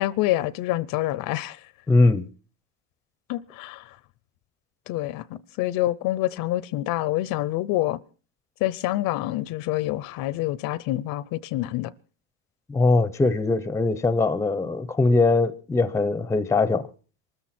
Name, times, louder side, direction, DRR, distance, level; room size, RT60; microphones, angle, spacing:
voice 1, 0.0-1.6 3.3-4.0 4.9-8.0 8.6-11.9, left 15 dB, 60° left, 0.7 m, -27 dB
voice 2, 1.9-2.3 12.7-16.9, left 3 dB, 5° left, 0.7 m, -21 dB
23.5 x 13.5 x 4.3 m
cardioid pair, 130°, 39 cm